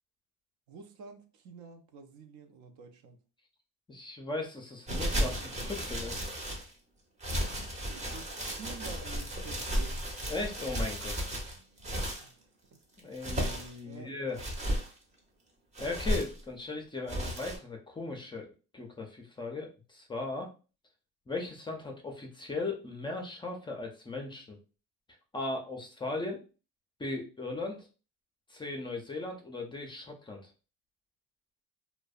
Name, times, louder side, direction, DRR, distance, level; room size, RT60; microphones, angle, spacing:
voice 1, 0.7-3.2 7.9-10.1 12.2-12.8 13.8-14.1, right 4 dB, 65° right, 0.5 m, -49 dB
voice 2, 3.9-6.3 10.3-11.1 13.0-14.4 15.8-18.5 18.7-20.5 21.3-24.6 25.3-26.4 27.0-27.9 28.5-30.5, left 3 dB, 15° left, 0.4 m, -37 dB
sound 1, 4.9-6.7 7.2-12.3 13.0-13.8 14.3-14.9 15.7-16.4 17.1-17.6, equal, 20° right, 0.7 m, -34 dB
2.5 x 2.1 x 2.3 m
cardioid pair, 115°, 31 cm